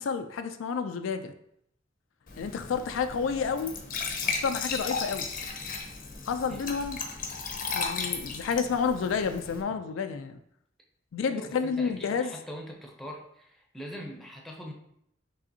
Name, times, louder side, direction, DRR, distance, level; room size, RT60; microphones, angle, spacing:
voice 1, 0.0-1.3 2.4-3.7 4.4-5.3 6.3-7.0 7.7-10.4 11.1-12.3, left 6 dB, 85° left, 8 dB, 0.4 m, -30 dB
Glass / Trickle dribble / Fill (with liquid), 2.3-9.6, left 4 dB, 45° left, 0.6 m, -35 dB
voice 2, 11.3-14.7, equal, ahead, 0 dB, 0.7 m, -42 dB
5.4 x 3.3 x 2.7 m, 0.73 s
head